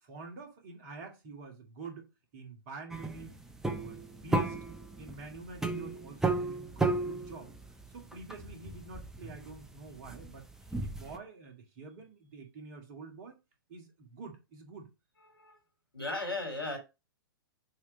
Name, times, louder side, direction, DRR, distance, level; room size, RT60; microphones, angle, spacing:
voice 1, 0.0-2.1 2.3-3.3 3.7-4.6 5.0-7.5 7.9-10.4 10.8-13.4 13.7-14.9, right 4 dB, 40° right, 2.0 m, -47 dB
sound 1, 2.9-11.2, right 2 dB, 5° right, 0.6 m, -34 dB
voice 2, 15.9-16.8, left 2 dB, 85° left, 3.0 m, -35 dB
7.0 x 3.1 x 4.9 m
figure-of-eight pair, 110°, 12 cm